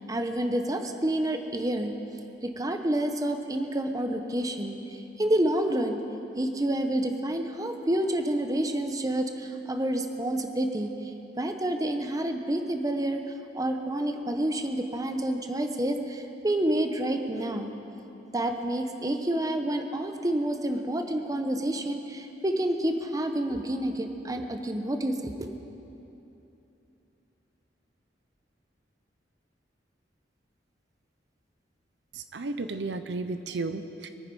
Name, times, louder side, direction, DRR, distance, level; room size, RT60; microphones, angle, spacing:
voice 1, 0.0-1.9 2.4-6.0 6.3-11.1 11.4-13.2 13.5-17.7 18.3-25.3, right 1 dB, 20° right, 6 dB, 0.8 m, -28 dB
voice 2, 32.1-34.1, right 3 dB, 70° right, 10 dB, 0.7 m, -33 dB
24.0 x 9.3 x 5.4 m, 3.0 s
head